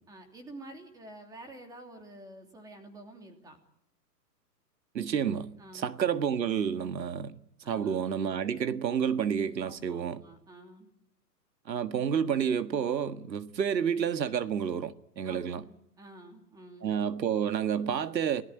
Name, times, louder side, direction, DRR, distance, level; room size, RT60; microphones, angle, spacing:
voice 1, 0.1-3.6 5.6-5.9 7.6-8.2 9.6-10.9 15.2-16.9, right 1 dB, 5° right, 2.9 m, -49 dB
voice 2, 4.9-7.4 7.7-10.2 11.7-15.6 16.8-18.4, right 8 dB, 85° right, 1.8 m, -30 dB
30.0 x 19.0 x 9.0 m
hypercardioid pair, 165°, 49 cm